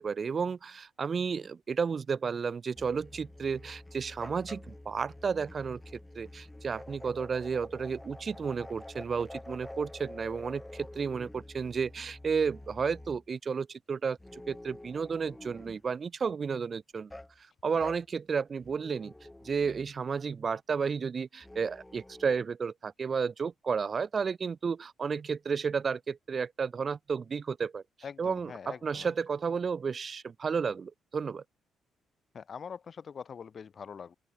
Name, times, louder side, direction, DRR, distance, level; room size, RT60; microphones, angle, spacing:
voice 1, 0.0-5.8 6.1-17.1 17.6-19.1 19.4-27.8 28.2-31.4, right 5 dB, 40° right, 0.8 m, -32 dB
sound 1, 2.8-13.3 14.2-15.9 17.1-17.4 17.8-18.0 18.6-20.0 21.4-22.4, left 1 dB, 10° left, 4.6 m, -48 dB
voice 2, 28.0-29.1 32.3-34.2, left 6 dB, 45° left, 0.6 m, -43 dB
open air
cardioid pair, 90°, 0 cm